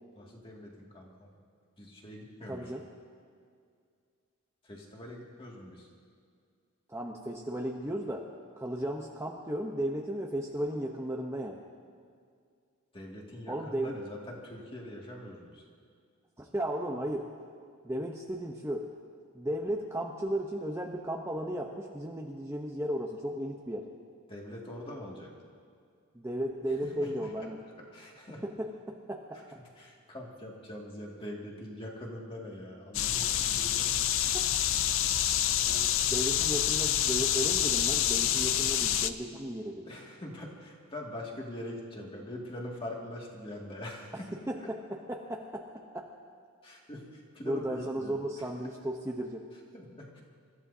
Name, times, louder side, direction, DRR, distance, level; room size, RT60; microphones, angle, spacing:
voice 1, 0.2-1.4 1.8-2.7 4.6-5.9 12.9-15.6 24.3-25.3 26.8-27.3 27.9-28.4 29.3-34.1 35.6-36.1 39.8-44.7 46.6-48.4 49.7-50.2, left 1 dB, 25° left, -2 dB, 2.2 m, -43 dB
voice 2, 2.5-2.8 6.9-8.3 8.6-11.6 13.5-14.0 16.4-17.3 17.8-18.9 19.3-23.9 26.1-27.6 28.4-29.4 34.3-34.4 36.1-39.8 44.5-45.7 45.9-46.1 47.4-49.4, right 1 dB, 15° right, -1 dB, 0.8 m, -35 dB
sound 1, 32.9-39.1, left 11 dB, 65° left, 0.5 m, -27 dB
28.0 x 14.0 x 2.8 m, 2.2 s
head